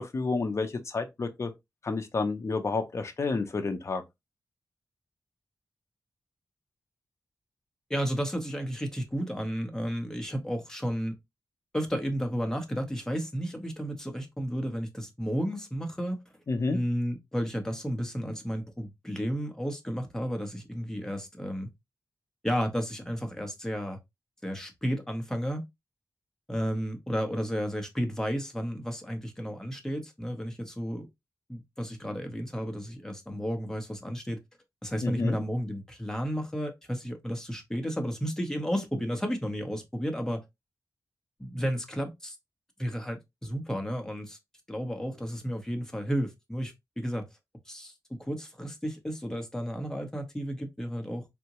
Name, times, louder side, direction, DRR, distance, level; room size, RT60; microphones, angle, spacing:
voice 1, 0.0-1.5 1.8-4.0 16.5-16.8 35.0-35.4, left 3 dB, 45° left, 0.5 m, -30 dB
voice 2, 7.9-11.2 11.7-16.2 16.7-21.7 22.4-24.0 24.4-25.6 26.5-31.1 31.5-34.4 34.8-40.4 41.4-42.4 42.8-44.4 44.7-47.3 47.7-47.9 48.2-51.2, equal, 10° left, 0.8 m, -32 dB
3.7 x 2.1 x 2.8 m
wide cardioid pair, 105°, 7 cm